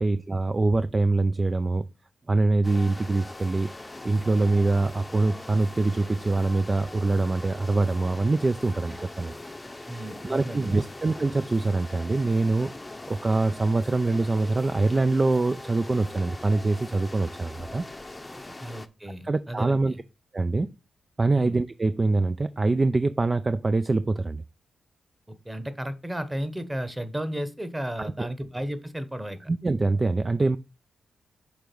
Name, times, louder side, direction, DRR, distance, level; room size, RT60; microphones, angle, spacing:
voice 1, 0.0-1.9 2.3-3.7 4.0-9.3 9.9-17.8 19.2-19.9 20.3-20.7 21.2-24.4 28.0-28.3 29.5-30.6, right 3 dB, 35° right, 0.3 m, -24 dB
sound 1, 2.6-18.9, left 2 dB, 20° left, 0.6 m, -41 dB
voice 2, 9.9-10.8 18.3-20.0 21.4-21.6 25.3-29.4, right 1 dB, 15° right, 1.1 m, -34 dB
6.2 x 3.5 x 5.2 m
supercardioid pair, 45°, 0 cm